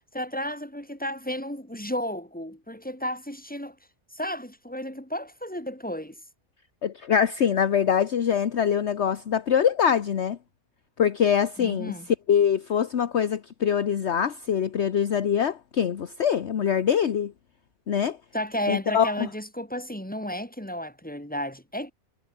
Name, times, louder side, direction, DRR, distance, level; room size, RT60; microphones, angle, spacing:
voice 1, 0.1-3.7 4.1-6.1 11.6-12.1 18.3-21.9, equal, 5° left, 4.5 m, -33 dB
voice 2, 6.8-10.4 11.0-11.9 12.3-17.3 17.9-18.2 18.7-19.3, left 8 dB, 55° left, 1.2 m, -24 dB
omnidirectional pair, 1.5 m